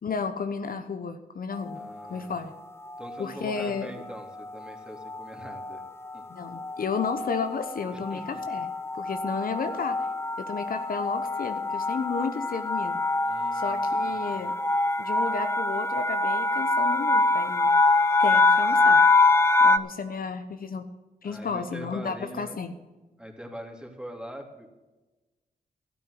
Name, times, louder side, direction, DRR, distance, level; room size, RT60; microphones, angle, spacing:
voice 1, 0.0-1.8 2.1-2.5 3.2-3.9 6.3-8.7 8.9-10.1 10.4-13.0 13.5-14.5 15.0-17.7 18.2-19.0 19.6-20.9 21.2-22.8, left 5 dB, 60° left, 8 dB, 1.0 m, -32 dB
sound 1, 1.6-2.1 2.9-3.3 3.6-3.8 4.0-19.8, left 3 dB, 15° left, 0.6 m, -25 dB
voice 2, 1.7-2.5 3.0-5.9 6.1-6.2 7.9-8.4 13.2-13.8 14.1-14.4 21.2-22.6 23.2-24.7, equal, 5° right, 1 dB, 3.0 m, -43 dB
12.5 x 9.0 x 6.8 m, 1.1 s
cardioid pair, 65°, 16 cm